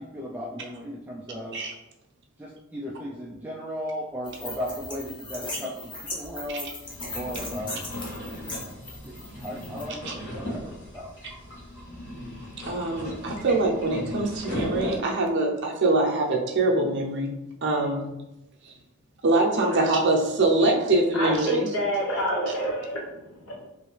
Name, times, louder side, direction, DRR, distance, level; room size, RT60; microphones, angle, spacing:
voice 1, 0.0-1.6 2.4-6.7 7.1-7.9 9.0-11.1, equal, 10° right, -5 dB, 0.3 m, -36 dB
sound 1, 4.3-9.8, left 2 dB, 20° left, 0.7 m, -38 dB
sound 2, 6.8-15.0, left 1 dB, 85° left, 1.4 m, -36 dB
voice 2, 12.7-17.3 17.6-18.1 18.6-18.7 19.2-21.7 22.5-22.6, right 2 dB, 55° right, 0 dB, 0.6 m, -24 dB
voice 3, 21.1-23.7, equal, 70° left, -3 dB, 1.1 m, -28 dB
3.1 x 2.7 x 3.1 m, 0.92 s
head